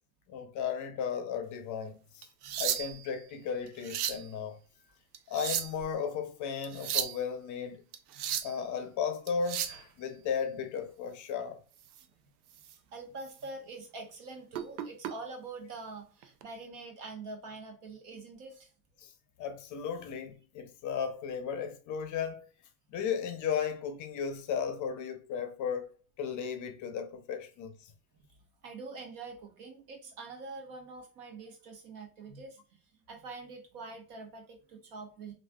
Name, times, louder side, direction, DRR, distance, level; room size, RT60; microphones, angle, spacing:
voice 1, 0.3-2.3 2.6-4.6 5.3-7.8 8.4-11.6 19.0-19.1 19.4-22.5 22.9-27.9, left 7 dB, 40° left, 0.6 m, -35 dB
sound 1, 2.2-3.1 3.7-4.3 5.1-5.9 6.6-7.2 7.9-8.6 9.3-9.8 11.9-12.0 12.5-12.8 13.2-13.4 14.5-15.1 16.2-16.4, right 10 dB, 85° right, 0.6 m, -34 dB
voice 2, 12.9-18.7 28.6-32.6 33.1-35.3, right 3 dB, 55° right, 1.2 m, -45 dB
3.2 x 2.5 x 2.3 m
hypercardioid pair, 95°, 45 cm